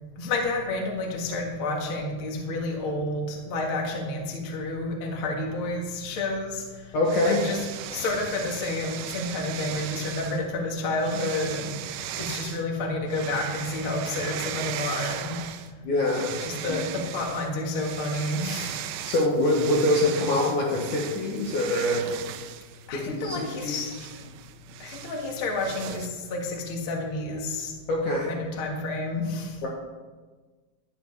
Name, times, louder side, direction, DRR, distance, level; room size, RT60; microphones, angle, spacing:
voice 1, 0.2-7.0 7.2-7.6 7.9-15.4 16.4-18.8 22.9-24.2 24.8-27.7 28.3-29.6, left 2 dB, 45° left, 0 dB, 1.8 m, -30 dB
voice 2, 6.9-7.4 15.8-16.4 16.7-16.8 19.1-22.1 22.9-23.9 27.9-28.3 29.6-29.7, left 1 dB, 60° left, -2 dB, 2.3 m, -24 dB
sound 1, 7.1-10.4 11.0-12.6 13.1-15.7 16.0-26.1, right 11 dB, 85° right, 2.1 m, -37 dB
12.5 x 9.7 x 4.7 m, 1.4 s
omnidirectional pair, 4.9 m